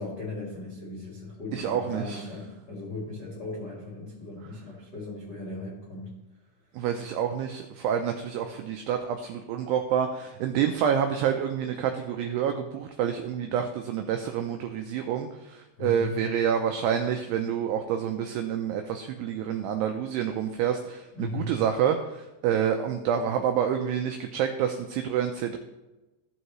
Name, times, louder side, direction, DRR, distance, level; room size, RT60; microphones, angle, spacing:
voice 1, 0.0-6.1 15.8-16.1 21.1-21.5, left 2 dB, 65° left, -4 dB, 1.0 m, -37 dB
voice 2, 1.5-2.2 6.7-25.6, right 8 dB, 90° right, 5 dB, 2.3 m, -28 dB
15.0 x 6.4 x 3.1 m, 1.1 s
omnidirectional pair, 5.3 m